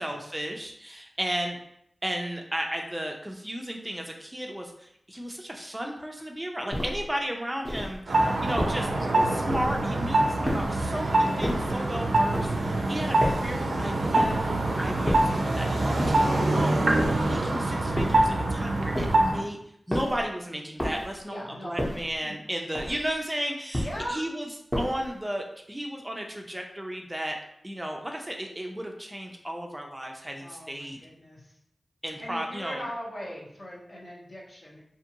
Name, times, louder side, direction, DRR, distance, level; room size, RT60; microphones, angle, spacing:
voice 1, 0.0-1.6 2.0-19.6 19.9-24.5 24.7-27.4 27.6-31.0 32.0-32.9, equal, 15° right, 1 dB, 0.4 m, -34 dB
sound 1, 6.7-7.1 7.6-8.0 8.6-8.9 9.5-9.9 10.4-10.9 11.4-11.8 12.3-12.7 13.2-13.6 14.2-14.5 15.1-15.4 16.0-16.4 17.0-17.4 18.0-18.3 18.9-19.4 19.9-20.3 20.8-21.2 21.8-22.2 22.7-23.1 23.7-24.1 24.7-25.1, equal, 20° left, 0.8 m, -31 dB
sound 2, 8.1-19.4, right 2 dB, 90° right, 0.4 m, -25 dB
voice 2, 21.2-22.3 23.8-24.2 30.4-31.5 32.2-34.8, equal, 55° left, -5 dB, 0.9 m, -40 dB
2.5 x 2.5 x 2.8 m, 0.73 s
cardioid pair, 50°, 0 cm